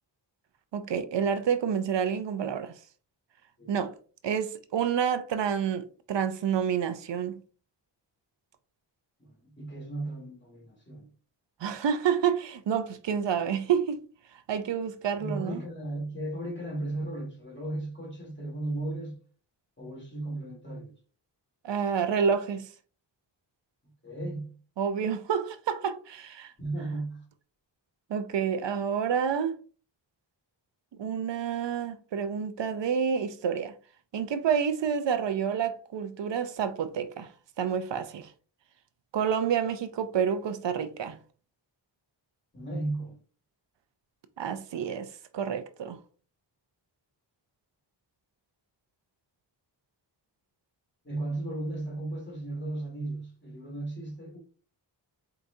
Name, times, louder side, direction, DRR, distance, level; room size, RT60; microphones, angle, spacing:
voice 1, 0.7-2.7 3.7-3.9 4.2-7.4 11.6-14.0 14.5-15.6 21.6-22.7 24.8-26.5 28.1-29.6 31.0-33.7 34.1-37.3 37.6-38.3 39.1-41.2 44.4-46.0, right 7 dB, 75° right, 0.6 m, -29 dB
voice 2, 9.2-11.1 15.2-19.2 19.8-20.9 24.0-24.5 26.6-27.3 42.5-43.2 51.0-54.4, right 2 dB, 25° left, 1.9 m, -35 dB
4.6 x 3.9 x 2.6 m
wide cardioid pair, 110°, 44 cm